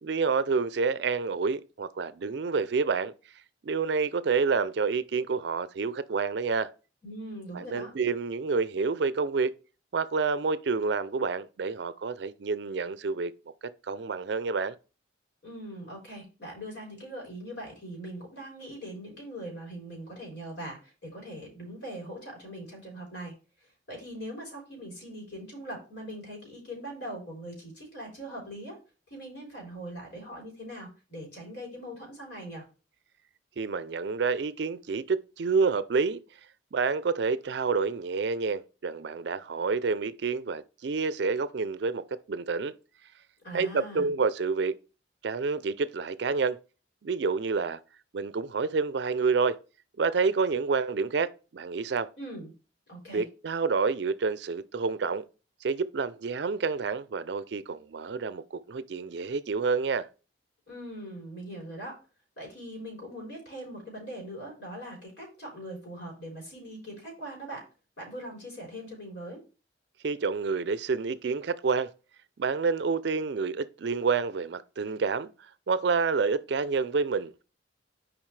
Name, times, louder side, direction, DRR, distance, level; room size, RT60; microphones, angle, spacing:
voice 1, 0.0-3.1 3.6-6.7 7.5-9.5 9.9-13.3 13.9-14.7 33.6-36.2 36.7-42.7 43.5-44.7 45.2-46.6 47.0-47.8 48.1-49.6 50.0-52.1 53.1-55.2 55.6-60.1 70.0-71.9 72.4-75.3 75.7-77.4, right 4 dB, 65° right, 0.4 m, -28 dB
voice 2, 7.0-7.9 15.4-23.3 23.6-28.8 29.1-32.6 43.4-44.1 52.2-52.5 52.9-53.2 60.7-62.0 62.4-67.7 68.0-69.4, right 1 dB, 65° left, 4.0 m, -41 dB
7.3 x 5.0 x 3.2 m
head